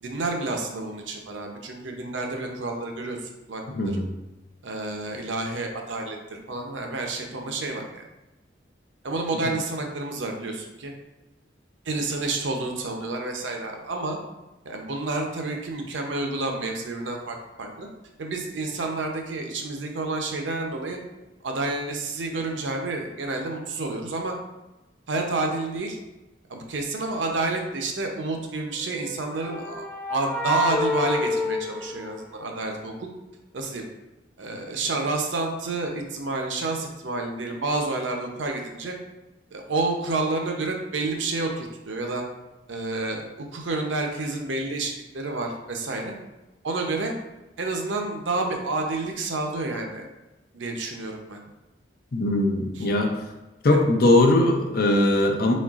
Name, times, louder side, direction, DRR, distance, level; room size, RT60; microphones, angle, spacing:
voice 1, 0.0-3.2 3.5-4.0 4.6-8.0 9.0-10.9 11.8-14.2 14.6-17.9 18.2-21.0 21.4-24.3 25.1-26.0 26.5-33.1 33.5-33.8 34.4-39.0 39.5-42.2 42.7-43.2 43.5-46.1 46.6-47.1 47.6-50.1 50.5-51.4 52.7-52.9 53.7-53.8, right 2 dB, 85° right, 2 dB, 0.7 m, -29 dB
voice 2, 3.7-4.1 52.1-53.1 53.6-55.5, left 1 dB, 55° left, 2 dB, 0.6 m, -20 dB
sound 1, 28.8-32.7, left 2 dB, 10° left, 0.4 m, -29 dB
4.2 x 3.9 x 2.4 m, 1.0 s
head